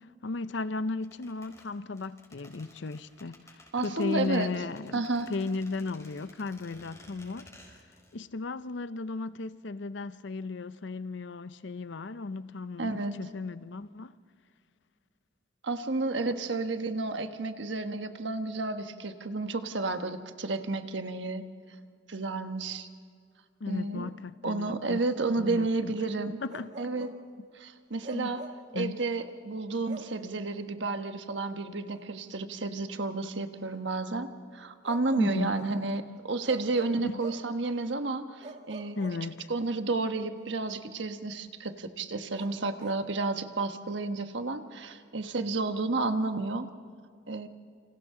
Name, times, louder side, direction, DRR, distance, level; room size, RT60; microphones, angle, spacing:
voice 1, 0.2-5.0 5.3-7.7 8.1-14.1 23.6-25.0 25.3-26.0 26.3-26.7 28.1-28.4 28.7-29.0 35.2-35.6 37.0-37.2 39.0-39.5, left 3 dB, 75° left, 0.6 m, -35 dB
sound 1, 1.0-8.2 8.4-8.5, left 1 dB, 15° left, 4.7 m, -55 dB
voice 2, 3.7-4.5 4.9-5.3 12.8-13.1 15.6-21.4 22.1-22.9 23.7-24.1 24.4-26.4 26.8-27.1 27.6-28.4 28.7-39.0 39.5-46.7 47.3-47.5, right 3 dB, 75° right, 1.3 m, -31 dB
Bark, 26.5-27.2 28.0-28.7 29.8-30.2 31.9-32.1 34.8-35.8 36.4-37.5 38.4-39.7 42.3-43.1, right 2 dB, 40° right, 2.0 m, -46 dB
29.5 x 27.0 x 3.8 m
head